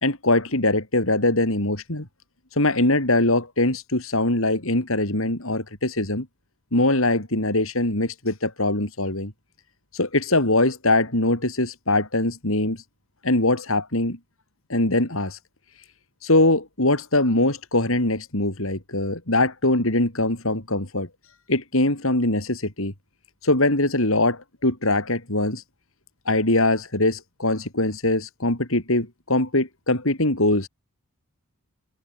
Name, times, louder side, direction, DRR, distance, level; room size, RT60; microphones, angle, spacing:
voice 1, 0.0-2.1 2.6-6.3 6.7-9.3 9.9-12.8 13.2-14.2 14.7-15.4 16.2-21.1 21.5-22.9 23.4-25.6 26.3-30.7, left 2 dB, 65° left, 4.5 m, -22 dB
head